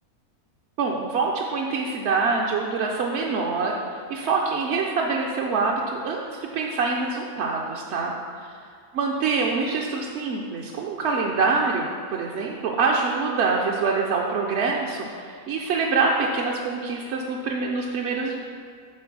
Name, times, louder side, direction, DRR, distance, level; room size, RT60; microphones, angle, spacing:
voice 1, 0.8-3.7 4.1-8.1 8.9-18.4, right 4 dB, 65° right, -1 dB, 0.7 m, -25 dB
7.7 x 3.9 x 5.9 m, 2.1 s
omnidirectional pair, 1.5 m